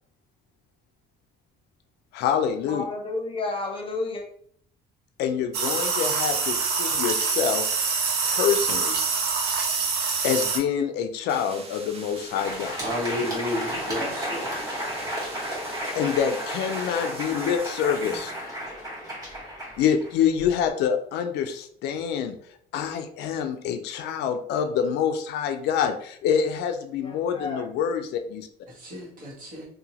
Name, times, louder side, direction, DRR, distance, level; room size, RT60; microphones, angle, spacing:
voice 1, 2.1-2.8 5.2-7.7 8.2-9.0 10.2-12.8 15.9-18.3 19.8-22.4 22.7-28.5, left 8 dB, 80° left, 7 dB, 0.4 m, -26 dB
voice 2, 2.7-4.2 27.0-27.6, left 3 dB, 30° left, 2 dB, 0.7 m, -31 dB
sound 1, 5.5-10.6, right 5 dB, 75° right, 0.6 m, -25 dB
sound 2, 11.3-18.5, right 3 dB, 35° right, 0.6 m, -44 dB
Crowd, 12.2-20.6, equal, 20° right, 1.4 m, -33 dB
voice 3, 12.7-14.6 28.7-29.7, left 1 dB, 55° right, -3 dB, 1.3 m, -32 dB
2.7 x 2.2 x 2.8 m, 0.62 s
cardioid pair, 110°, 17 cm